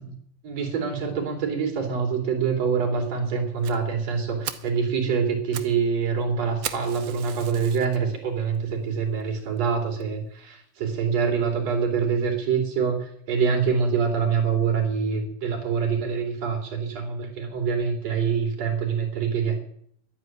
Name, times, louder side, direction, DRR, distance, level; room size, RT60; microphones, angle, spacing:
voice 1, 0.4-19.6, right 6 dB, 50° right, 1 dB, 4.1 m, -25 dB
Fire, 3.6-3.8 4.2-4.3 4.4-4.7 5.3-5.8 6.0-6.1 6.6-8.0 8.6-8.7 9.2-9.3 9.6-9.7 10.0-10.1, right 11 dB, 75° right, 1.5 m, -36 dB
11.5 x 9.6 x 9.3 m, 0.66 s
omnidirectional pair, 4.1 m